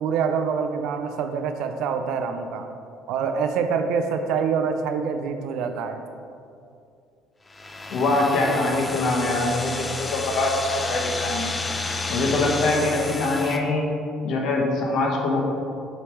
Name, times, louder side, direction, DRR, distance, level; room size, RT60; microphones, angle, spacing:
voice 1, 0.0-2.7 3.1-6.0, right 6 dB, 70° right, 7 dB, 0.4 m, -25 dB
sound 1, 7.5-13.6, left 3 dB, 15° left, 0.4 m, -31 dB
voice 2, 7.9-11.5 12.1-13.9 14.2-15.4, left 2 dB, 55° left, 0 dB, 1.0 m, -23 dB
6.7 x 3.2 x 4.5 m, 2.5 s
cardioid pair, 145°, 0 cm